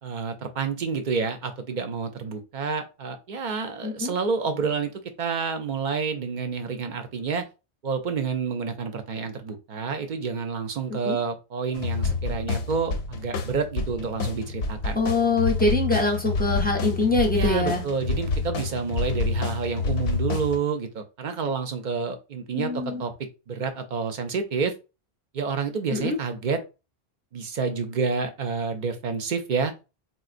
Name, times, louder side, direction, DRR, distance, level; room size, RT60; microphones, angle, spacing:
voice 1, 0.0-4.9 5.2-7.4 7.8-15.0 17.3-23.1 23.5-24.7 25.3-26.6 27.3-29.7, right 5 dB, 55° right, 0.6 m, -29 dB
sound 1, 11.7-20.6, left 4 dB, 85° left, 0.8 m, -28 dB
voice 2, 14.9-17.8 22.5-23.0 25.9-26.2, left 2 dB, 10° left, 0.5 m, -24 dB
4.0 x 2.1 x 2.5 m
omnidirectional pair, 1.0 m